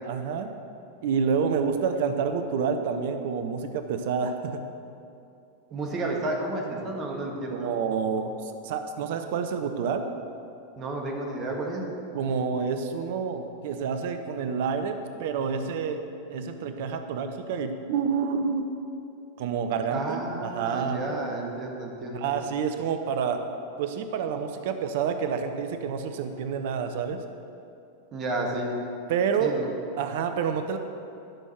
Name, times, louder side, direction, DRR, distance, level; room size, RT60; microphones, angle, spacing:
voice 1, 0.0-0.5 1.0-4.6 7.5-10.1 12.1-16.0 16.3-18.7 19.4-21.0 22.1-23.4 23.8-27.2 29.1-29.6 30.0-30.8, right 6 dB, 50° right, 8 dB, 0.6 m, -28 dB
voice 2, 5.7-7.7 10.8-11.9 19.9-22.3 28.1-28.8 29.4-29.7, right 2 dB, 30° right, 0 dB, 1.6 m, -31 dB
12.0 x 6.3 x 5.9 m, 2.7 s
figure-of-eight pair, 90°, 0 cm